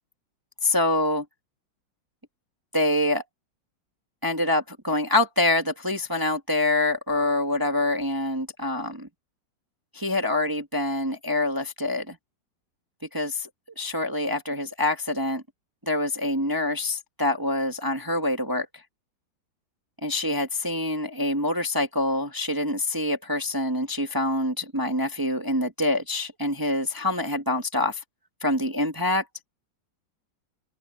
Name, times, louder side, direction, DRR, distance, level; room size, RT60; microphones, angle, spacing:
voice 1, 0.6-1.2 2.7-3.2 4.2-9.1 9.9-12.2 13.1-13.5 13.8-15.4 15.8-18.7 20.0-28.0 28.4-29.2, left 2 dB, 10° right, 1.5 m, -25 dB
open air
omnidirectional pair, 2.0 m